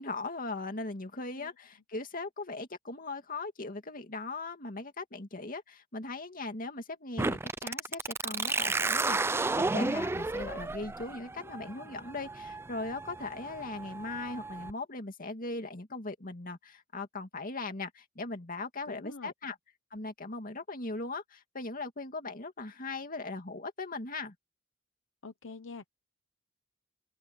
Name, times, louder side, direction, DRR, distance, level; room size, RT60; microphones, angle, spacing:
voice 1, 0.0-19.5 19.9-24.3, left 3 dB, 45° left, 2.4 m, -39 dB
sound 1, 7.2-14.7, right 3 dB, 10° right, 0.4 m, -33 dB
voice 2, 18.9-19.3 25.2-25.9, left 4 dB, 70° left, 0.9 m, -45 dB
open air
head